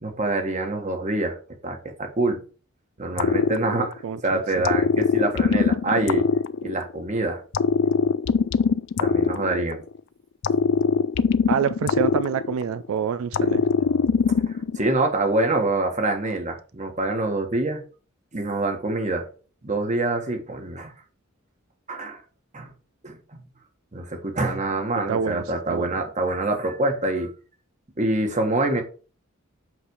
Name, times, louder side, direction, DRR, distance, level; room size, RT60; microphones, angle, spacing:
voice 1, 0.0-1.4 1.6-2.4 3.0-6.3 6.6-7.4 9.0-9.8 14.5-17.8 18.3-19.3 19.6-20.9 21.9-22.2 22.5-22.7 23.0-23.2 23.9-27.3 28.0-28.8, right 2 dB, 35° right, 1.5 m, -25 dB
sound 1, 3.2-4.2 4.6-7.1 7.5-10.0 10.4-12.9 13.3-14.8, left 5 dB, 60° left, 0.4 m, -22 dB
voice 2, 4.0-4.4 11.5-13.6 25.1-26.0, right 7 dB, 80° right, 0.3 m, -27 dB
7.8 x 3.4 x 4.7 m
head